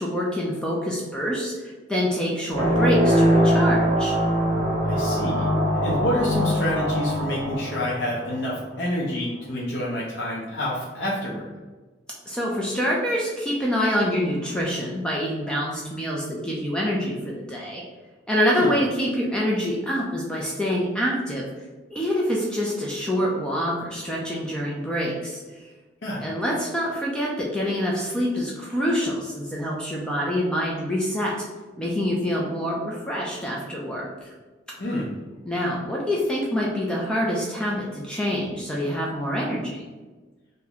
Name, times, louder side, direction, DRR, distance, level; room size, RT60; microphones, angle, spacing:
voice 1, 0.0-4.2 12.3-17.8 18.3-21.5 21.9-25.4 26.2-31.3 31.8-34.3 35.5-39.8, equal, 5° left, -4 dB, 0.4 m, -26 dB
sound 1, 2.5-8.7, equal, 40° right, 1.0 m, -22 dB
voice 2, 4.8-11.5 18.6-18.7 26.0-26.3 34.8-35.1, left 1 dB, 65° left, -5 dB, 0.6 m, -28 dB
2.8 x 2.7 x 3.9 m, 1.3 s
head